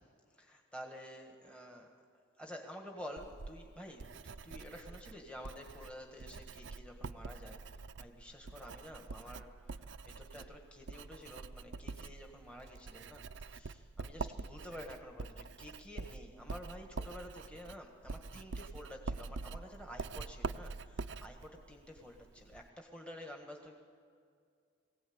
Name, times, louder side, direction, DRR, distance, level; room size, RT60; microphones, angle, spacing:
voice 1, 0.4-2.0 2.4-7.6 8.0-23.8, equal, 5° left, 2 dB, 1.6 m, -50 dB
Writing, 3.2-22.7, right 4 dB, 70° right, 0.5 m, -45 dB
22.5 x 17.0 x 8.8 m, 2.2 s
head